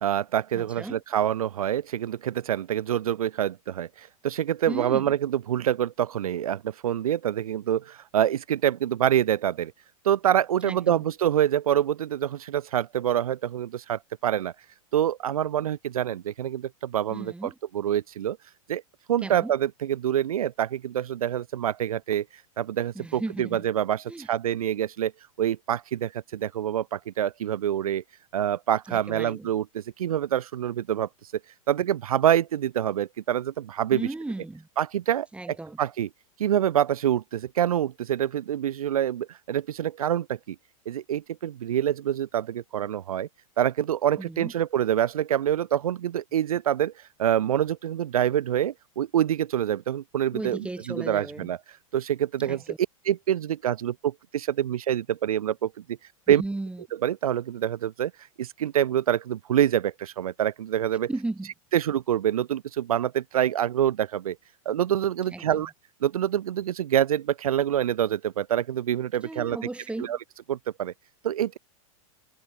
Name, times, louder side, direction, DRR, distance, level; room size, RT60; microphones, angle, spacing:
voice 1, 0.0-9.7 10.0-14.5 14.9-18.4 18.7-18.8 19.1-22.2 22.6-25.1 25.4-28.0 28.3-31.1 31.7-34.1 34.8-36.1 36.4-40.5 40.9-43.3 43.6-51.6 51.9-52.6 53.0-56.0 56.3-56.4 57.0-58.1 58.4-61.1 61.7-64.4 64.6-65.7 66.0-69.6 70.0-70.2 70.5-70.9 71.2-71.6, right 10 dB, 85° right, 1.1 m, -26 dB
voice 2, 0.5-1.0 4.7-5.1 10.6-11.0 17.1-17.5 19.2-19.5 22.9-23.6 24.1-24.3 28.9-29.5 33.9-34.7 35.3-35.8 44.2-44.5 50.3-51.5 52.5-52.8 56.4-56.8 61.1-61.5 65.3-65.6 69.2-70.2, right 2 dB, 5° right, 4.2 m, -35 dB
hypercardioid pair, 120°, 18 cm